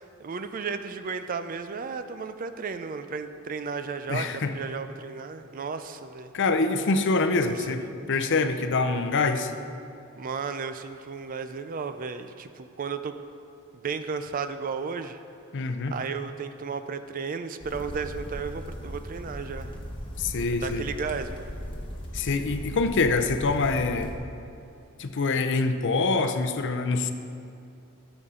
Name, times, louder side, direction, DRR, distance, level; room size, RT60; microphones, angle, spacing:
voice 1, 0.2-6.3 7.4-8.1 10.2-13.1 13.8-15.2 15.9-19.7 20.6-21.5, right 5 dB, 40° right, 9 dB, 0.4 m, -34 dB
voice 2, 4.1-4.5 6.3-9.5 15.5-16.0 20.2-20.9 22.1-24.1 25.0-27.1, left 3 dB, 55° left, 7 dB, 0.6 m, -25 dB
sound 1, 17.6-24.2, equal, 25° left, 1.1 m, -38 dB
13.5 x 7.1 x 3.7 m, 2.6 s
head